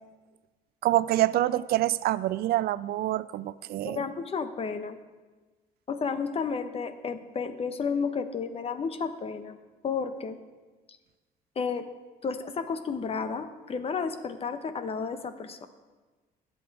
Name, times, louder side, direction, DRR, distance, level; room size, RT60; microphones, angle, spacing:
voice 1, 0.8-4.0, right 14 dB, 65° right, 18 dB, 0.4 m, -26 dB
voice 2, 3.8-5.0 5.9-9.6 9.8-10.4 11.6-11.9 12.2-15.7, left 5 dB, 35° left, 10 dB, 1.0 m, -32 dB
20.5 x 7.9 x 4.8 m, 1.3 s
cardioid pair, 110°, 17 cm